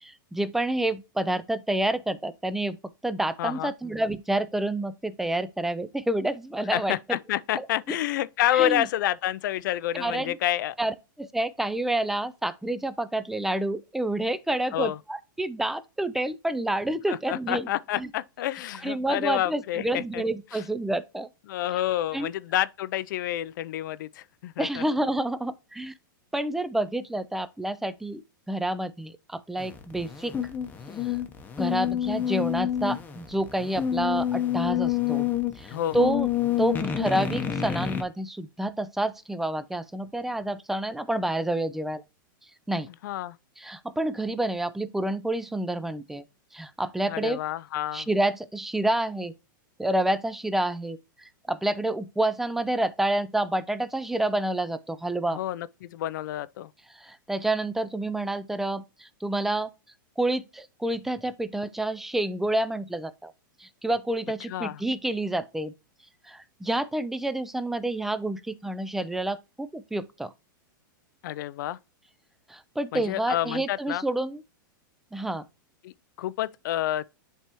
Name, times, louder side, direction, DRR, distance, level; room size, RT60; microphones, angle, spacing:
voice 1, 0.0-2.8 3.0-6.9 7.5-7.7 8.5-8.9 9.9-10.4 10.8-17.7 18.0-18.1 18.8-21.3 22.1-22.3 24.6-25.9 26.3-28.2 28.5-30.3 31.0-31.2 31.6-35.3 35.6-36.3 36.6-42.0 42.7-42.9 43.6-46.2 46.5-47.4 47.9-49.3 49.8-55.4 56.9-59.7 60.2-63.3 63.6-65.7 66.2-70.3 72.5-74.4 75.1-75.4, right 1 dB, 5° right, 0.3 m, -28 dB
voice 2, 3.4-3.7 6.7-10.8 14.7-15.0 17.1-20.2 20.5-20.6 21.5-24.8 35.7-36.2 43.0-43.4 47.1-48.1 55.3-56.7 64.5-64.8 71.2-71.8 72.9-74.0 75.8-77.1, left 13 dB, 65° left, 0.4 m, -29 dB
sound 1, 29.6-38.0, left 10 dB, 15° left, 0.8 m, -28 dB
10.0 x 3.4 x 2.9 m
hypercardioid pair, 140°, 11 cm